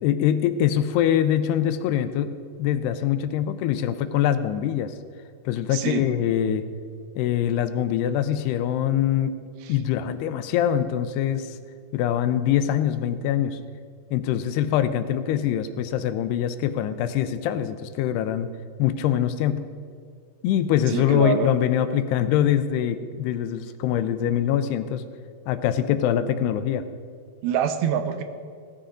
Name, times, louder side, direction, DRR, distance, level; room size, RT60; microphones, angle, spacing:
voice 1, 0.0-5.0 5.5-6.7 7.2-9.3 9.7-11.6 11.9-13.6 14.1-18.5 18.8-19.6 20.4-25.0 25.5-26.9, left 10 dB, 80° left, 11 dB, 2.6 m, -23 dB
voice 2, 5.7-6.0 9.6-9.8 20.9-21.5 27.4-28.2, right 9 dB, 80° right, 9 dB, 2.9 m, -25 dB
17.0 x 14.5 x 3.8 m, 2.2 s
omnidirectional pair, 4.8 m